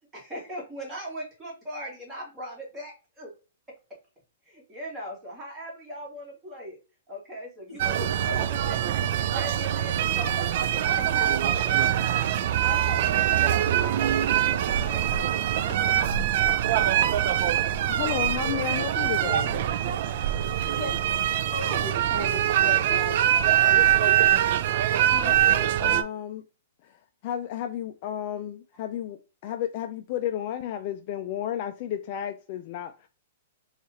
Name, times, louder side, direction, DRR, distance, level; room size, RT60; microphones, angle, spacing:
voice 1, 0.1-3.3 4.5-6.8 7.1-8.0 8.3-11.8 12.3-15.3 16.9-17.0, equal, 15° right, 1.8 m, -40 dB
voice 2, 7.7-8.4 18.1-18.2 20.7-21.2 21.5-23.5, equal, 15° left, 1.8 m, -37 dB
sound 1, 7.8-26.0, right 11 dB, 55° right, 0.3 m, -23 dB
voice 3, 17.9-19.6 25.1-26.4 26.8-33.1, left 10 dB, 45° left, 0.3 m, -33 dB
4.1 x 2.4 x 2.9 m
hypercardioid pair, 140°, 0 cm